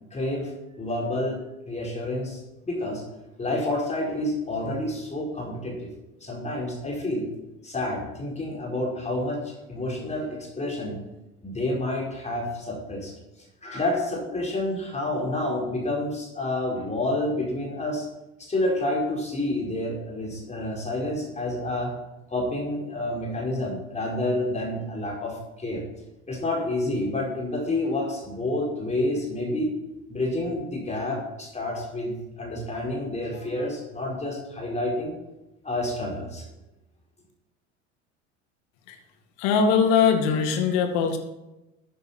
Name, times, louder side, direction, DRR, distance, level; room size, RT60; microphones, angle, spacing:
voice 1, 0.1-0.5 0.8-1.4 1.7-3.0 3.4-5.9 6.2-7.3 7.6-11.0 11.4-13.1 13.6-18.1 18.4-21.9 22.3-25.8 26.3-29.7 30.1-35.2 35.6-36.5, left 1 dB, 20° left, -2 dB, 4.9 m, -29 dB
voice 2, 39.4-41.2, left 6 dB, 60° left, 6 dB, 2.3 m, -21 dB
14.0 x 10.0 x 4.5 m, 0.95 s
figure-of-eight pair, 65°, 36 cm